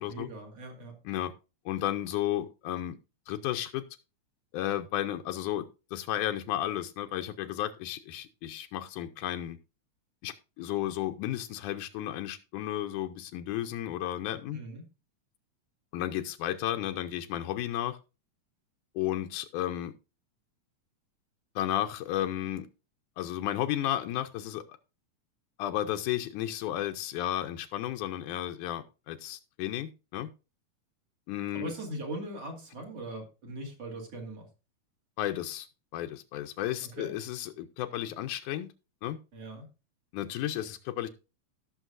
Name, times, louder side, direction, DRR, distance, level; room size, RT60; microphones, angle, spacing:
voice 1, 0.1-0.9 14.5-14.8 31.5-34.5 36.9-37.1 39.3-39.7, right 1 dB, 50° right, 0 dB, 3.3 m, -40 dB
voice 2, 1.7-3.0 3.3-3.8 4.5-9.6 10.2-14.6 15.9-18.0 19.0-19.9 21.6-22.7 23.2-24.6 25.6-30.3 31.3-31.7 35.2-35.7 35.9-38.7 39.0-39.2 40.1-41.1, left 12 dB, 85° left, 6 dB, 2.2 m, -33 dB
17.5 x 6.4 x 2.6 m, 0.30 s
omnidirectional pair, 3.5 m